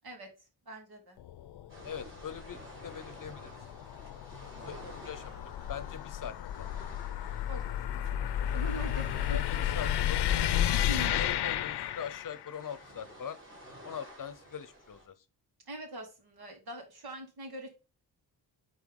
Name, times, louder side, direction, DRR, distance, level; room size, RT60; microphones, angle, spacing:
voice 1, 0.6-1.2 4.5-5.1 7.5-7.8 8.1-9.4 10.9-11.1 15.7-17.7, right 1 dB, 65° right, 3.3 m, -43 dB
sound 1, 1.2-12.6, left 11 dB, 75° left, 0.7 m, -33 dB
sound 2, 1.7-15.1, equal, 30° right, 4.6 m, -51 dB
voice 2, 1.8-3.7 4.7-6.7 9.3-10.6 11.1-13.4 13.8-15.2, left 7 dB, 50° left, 0.8 m, -42 dB
9.2 x 4.5 x 3.8 m
wide cardioid pair, 140°, 40 cm